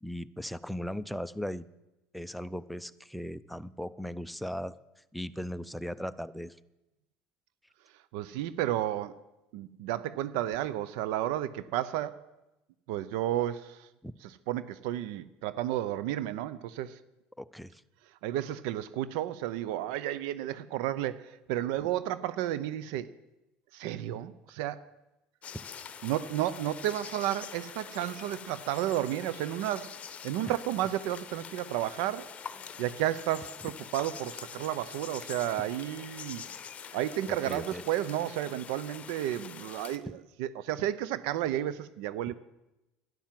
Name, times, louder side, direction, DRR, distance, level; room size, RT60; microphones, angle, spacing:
voice 1, 0.0-1.6 2.1-4.7 5.1-6.6 14.0-14.1 17.4-17.8 30.5-30.6 37.4-37.8, equal, ahead, 13 dB, 0.5 m, -38 dB
voice 2, 8.1-9.2 9.5-12.2 12.9-13.9 14.2-17.0 18.2-23.1 23.7-24.8 26.0-32.3 32.8-36.4 36.9-42.3, right 13 dB, 80° right, 16 dB, 0.6 m, -32 dB
sound 1, 25.4-40.0, left 7 dB, 30° left, 0.9 m, -45 dB
11.5 x 10.5 x 7.5 m, 0.97 s
supercardioid pair, 125°, 4 cm